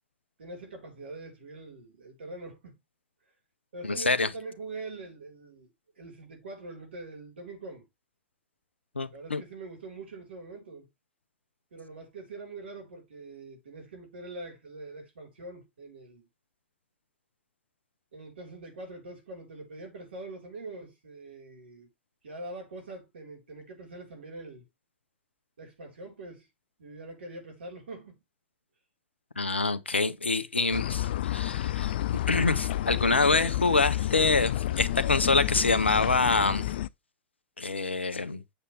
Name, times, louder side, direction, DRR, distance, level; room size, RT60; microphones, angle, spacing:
voice 1, 0.4-2.8 3.7-5.7 6.0-7.9 9.1-10.9 11.7-16.3 18.1-21.9 22.2-24.6 25.6-26.5 26.8-28.2, right 2 dB, 75° right, 4.2 m, -43 dB
voice 2, 3.8-4.3 9.0-9.4 29.4-31.9 32.3-36.7 37.6-38.4, left 3 dB, 90° left, 0.9 m, -26 dB
sound 1, 30.7-36.9, left 13 dB, 65° left, 0.4 m, -30 dB
8.3 x 7.1 x 3.3 m
figure-of-eight pair, 95°, 6 cm